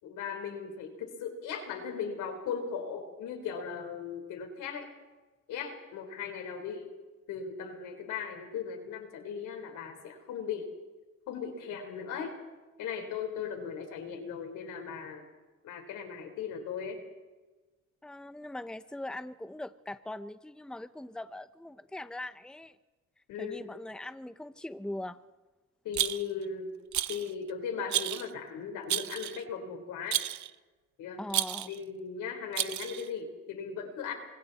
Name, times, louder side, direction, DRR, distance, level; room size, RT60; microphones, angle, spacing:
voice 1, 0.0-4.9 5.5-6.9 7.3-10.7 11.3-12.4 12.8-15.2 15.6-17.0 23.3-23.6 25.8-26.7 27.1-30.2 31.0-31.2 31.7-34.1, left 6 dB, 90° left, 4 dB, 4.4 m, -38 dB
voice 2, 18.0-22.8 23.4-25.2 31.2-31.7, left 1 dB, 5° left, 11 dB, 0.9 m, -41 dB
Rattle, 25.9-26.4 26.9-27.3 27.9-28.3 28.9-29.4 30.1-30.5 31.3-31.8 32.5-33.1, right 12 dB, 70° right, 0.9 m, -31 dB
27.5 x 26.0 x 4.3 m, 1.2 s
cardioid pair, 90°, 30 cm